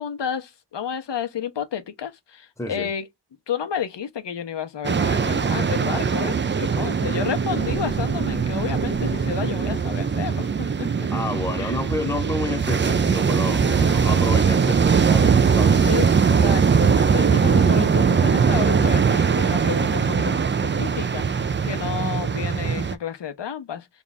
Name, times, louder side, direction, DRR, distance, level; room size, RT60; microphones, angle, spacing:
voice 1, 0.0-3.1 3.5-11.1 11.6-11.8 13.6-14.2 15.8-16.1 16.4-23.9, left 8 dB, 80° left, 0.9 m, -31 dB
voice 2, 2.6-2.9 11.1-15.9, left 2 dB, 5° left, 0.8 m, -30 dB
sound 1, 4.8-22.9, right 6 dB, 30° right, 0.4 m, -21 dB
sound 2, 7.5-9.7, right 5 dB, 90° right, 0.7 m, -37 dB
3.5 x 2.4 x 4.1 m
wide cardioid pair, 120°, 42 cm